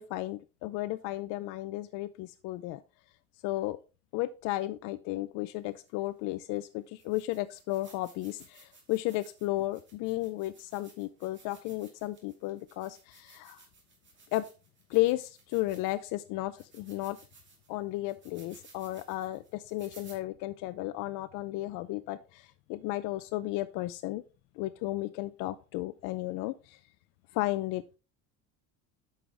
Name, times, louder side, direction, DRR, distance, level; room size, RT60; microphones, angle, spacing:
voice 1, 0.0-2.8 3.4-3.8 4.1-13.6 14.3-14.5 14.9-17.2 17.7-24.2 24.6-26.8 27.3-27.8, left 17 dB, 70° left, 12 dB, 0.5 m, -34 dB
sound 1, 5.9-6.0 6.6-6.7 7.0-16.1 16.6-20.2, right 4 dB, 35° right, 2.5 m, -59 dB
8.4 x 5.5 x 3.3 m, 0.31 s
cardioid pair, 110°, 33 cm